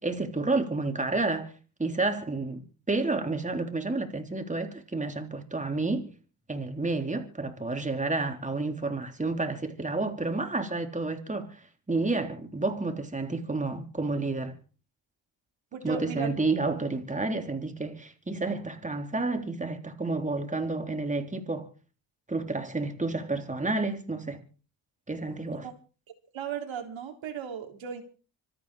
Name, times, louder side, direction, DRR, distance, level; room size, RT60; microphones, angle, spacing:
voice 1, 0.0-1.5 1.8-6.1 6.5-11.6 11.9-14.6 15.8-21.7 22.3-24.4 25.1-25.7, right 3 dB, 15° right, 3.4 m, -30 dB
voice 2, 15.7-16.3 16.6-16.8 25.6-25.7 26.3-28.0, right 7 dB, 80° right, 3.4 m, -36 dB
26.0 x 9.0 x 4.9 m
cardioid pair, 95°, 46 cm